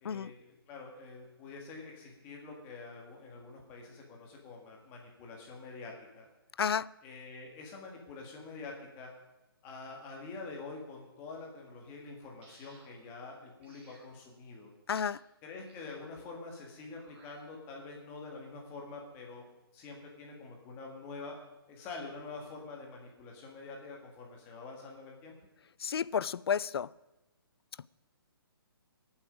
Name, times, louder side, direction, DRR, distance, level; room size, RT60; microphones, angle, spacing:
voice 1, 0.0-6.3 7.0-9.1 9.6-14.7 15.4-21.4 21.7-25.3, left 3 dB, 15° left, 1.6 m, -46 dB
voice 2, 6.6-6.9 14.9-15.2 25.8-26.9, left 7 dB, 75° left, 0.4 m, -31 dB
sound 1, 12.4-12.9 13.6-14.1 15.0-15.2 15.7-16.1 17.0-17.4, right 2 dB, 30° right, 3.5 m, -60 dB
21.5 x 7.3 x 5.0 m
hypercardioid pair, 170°, 13 cm